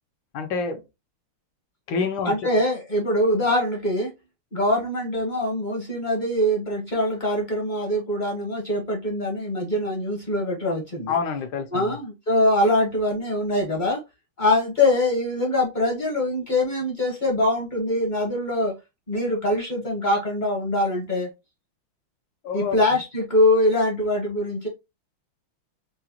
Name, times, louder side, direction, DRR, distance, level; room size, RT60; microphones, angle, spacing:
voice 1, 0.3-0.8 1.9-2.3 11.1-11.9 22.4-22.8, left 5 dB, 70° left, 1.4 m, -27 dB
voice 2, 2.2-4.1 4.5-11.1 11.7-14.0 14.4-18.7 19.1-21.3 22.5-24.7, left 1 dB, 40° left, 0.7 m, -23 dB
4.8 x 2.2 x 2.8 m
omnidirectional pair, 2.2 m